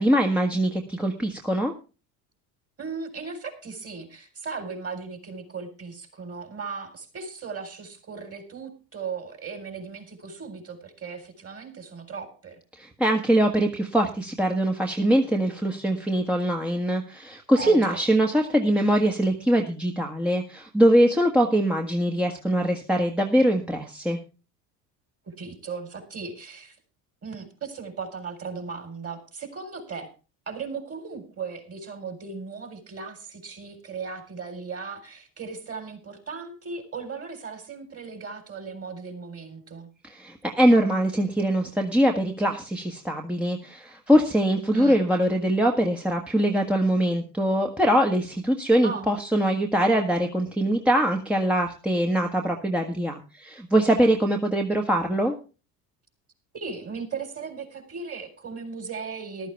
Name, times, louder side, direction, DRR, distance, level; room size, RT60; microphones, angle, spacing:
voice 1, 0.0-1.7 12.8-24.2 40.0-55.3, right 1 dB, 5° right, 1 dB, 1.5 m, -23 dB
voice 2, 2.8-12.6 17.5-18.0 25.3-26.8 27.2-30.1 30.5-39.9 44.7-45.0 48.8-49.1 56.5-59.5, right 5 dB, 30° right, 6 dB, 4.2 m, -37 dB
14.5 x 12.0 x 3.5 m, 0.34 s
hypercardioid pair, 70°, 47 cm